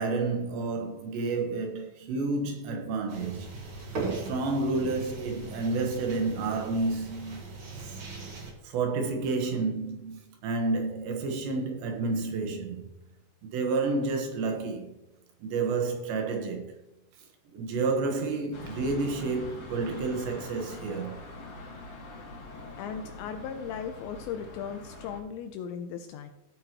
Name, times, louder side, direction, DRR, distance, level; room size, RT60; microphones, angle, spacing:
voice 1, 0.0-3.5 3.9-7.4 7.9-8.0 8.6-12.9 13.5-14.9 15.4-16.7 17.5-21.1, right 3 dB, 70° right, 3.3 m, -30 dB
sound 1, 3.1-8.5, right 3 dB, 55° right, 1.5 m, -39 dB
sound 2, 18.5-25.2, left 2 dB, 45° left, 1.9 m, -43 dB
voice 2, 22.8-26.3, left 7 dB, 90° left, 2.6 m, -37 dB
16.0 x 9.0 x 3.0 m
omnidirectional pair, 5.8 m